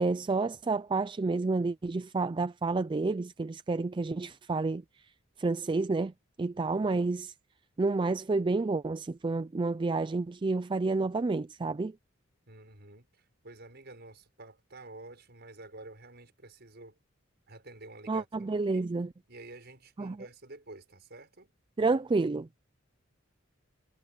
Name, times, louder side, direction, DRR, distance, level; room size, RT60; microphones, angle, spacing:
voice 1, 0.0-4.8 5.4-6.1 6.4-7.3 7.8-12.0 18.1-19.1 20.0-20.2 21.8-22.5, right 3 dB, 25° right, 0.4 m, -29 dB
voice 2, 12.5-17.0 17.5-18.3 18.5-18.8 19.3-21.5, right 2 dB, 55° right, 6.6 m, -49 dB
head